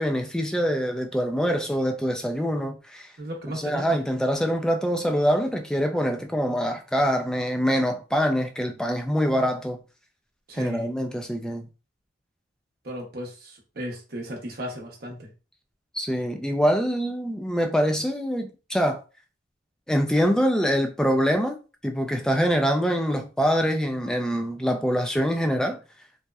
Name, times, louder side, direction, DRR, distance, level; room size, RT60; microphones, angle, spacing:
voice 1, 0.0-3.1 3.5-9.8 10.5-11.7 15.9-19.0 19.9-21.6 21.8-25.8, equal, 5° left, 0.3 m, -24 dB
voice 2, 3.2-3.8 10.5-10.9 12.8-13.3 13.8-15.2, equal, 60° right, 0.7 m, -34 dB
2.7 x 2.1 x 2.3 m
head